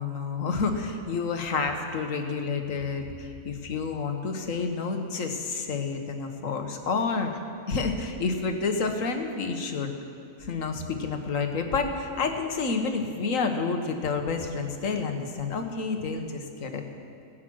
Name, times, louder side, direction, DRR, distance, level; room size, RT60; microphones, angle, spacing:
voice 1, 0.0-7.4 7.7-9.9 10.4-16.8, left 4 dB, 65° left, 5 dB, 1.5 m, -29 dB
17.0 x 9.9 x 6.2 m, 2.4 s
omnidirectional pair, 1.5 m